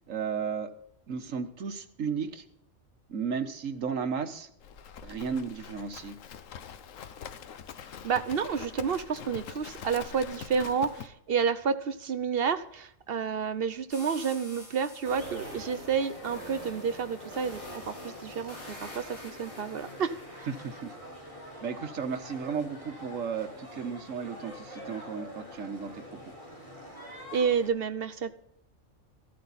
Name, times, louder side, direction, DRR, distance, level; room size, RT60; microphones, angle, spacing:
voice 1, 0.1-0.7 1.1-2.4 3.1-4.5 5.0-6.2 20.5-21.0 21.6-26.3, right 6 dB, 85° right, 8 dB, 1.6 m, -34 dB
Livestock farm animals working animals, 4.6-11.1, left 7 dB, 85° left, 1.2 m, -44 dB
voice 2, 8.0-20.5 27.3-28.3, right 6 dB, 55° right, 12 dB, 0.9 m, -30 dB
sound 1, 13.9-20.9, left 1 dB, 60° left, 4.0 m, -46 dB
sound 2, 15.1-27.7, equal, 25° left, 4.1 m, -45 dB
14.5 x 12.5 x 4.1 m, 0.71 s
omnidirectional pair, 1.3 m